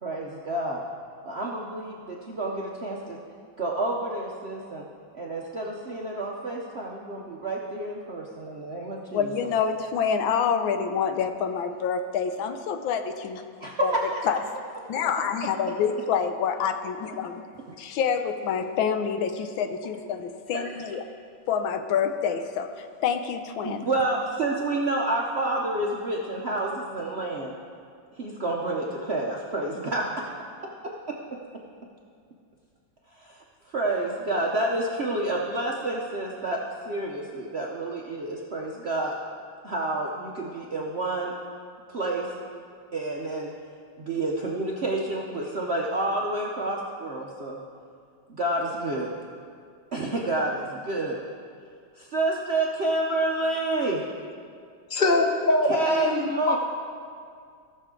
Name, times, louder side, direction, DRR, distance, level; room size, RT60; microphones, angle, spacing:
voice 1, 0.0-0.8 1.2-3.2 3.6-4.9 5.1-9.2 13.6-13.9 14.1-14.2 20.5-20.8 23.6-27.5 28.2-30.0 30.8-31.2 33.2-36.6 36.8-39.1 39.6-41.3 41.9-42.3 42.9-43.5 44.0-47.6 48.3-49.1 49.9-51.2 52.0-54.0 55.7-56.6, right 2 dB, 55° right, -2 dB, 0.7 m, -29 dB
voice 2, 9.1-13.4 13.8-13.9 14.2-14.4 14.9-17.4 17.8-21.0 21.5-23.8, left 7 dB, 85° left, 8 dB, 1.5 m, -27 dB
voice 3, 54.9-56.6, left 2 dB, 40° left, 2 dB, 0.6 m, -23 dB
16.5 x 6.6 x 3.7 m, 2.2 s
omnidirectional pair, 2.1 m